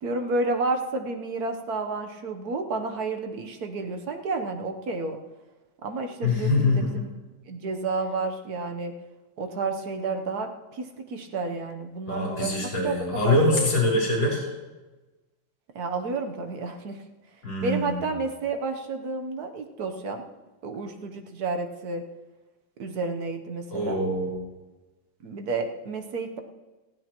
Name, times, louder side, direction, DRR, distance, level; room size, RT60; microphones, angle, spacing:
voice 1, 0.0-5.2 5.8-7.1 7.4-8.9 9.4-12.6 12.8-12.9 13.2-13.7 15.7-17.0 17.6-20.2 20.6-22.0 22.8-24.0 25.2-26.4, right 3 dB, 55° right, 5 dB, 1.3 m, -31 dB
voice 2, 6.2-7.0 12.1-14.4 17.4-18.1 23.7-24.3, left 2 dB, 65° left, -4 dB, 4.7 m, -24 dB
18.5 x 15.0 x 3.0 m, 1.2 s
omnidirectional pair, 2.2 m